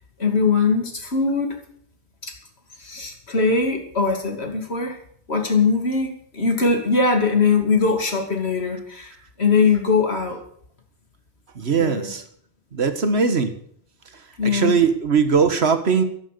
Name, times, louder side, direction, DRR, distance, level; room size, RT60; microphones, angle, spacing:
voice 1, 0.2-1.6 2.2-2.3 2.8-5.0 5.3-9.1 9.4-10.4 11.8-12.1 14.4-14.7, left 4 dB, 90° left, 3 dB, 3.0 m, -21 dB
voice 2, 11.6-12.2 12.7-13.5 14.4-16.0, right 5 dB, 85° right, 9 dB, 1.7 m, -20 dB
13.5 x 11.0 x 6.8 m, 0.64 s
omnidirectional pair, 1.1 m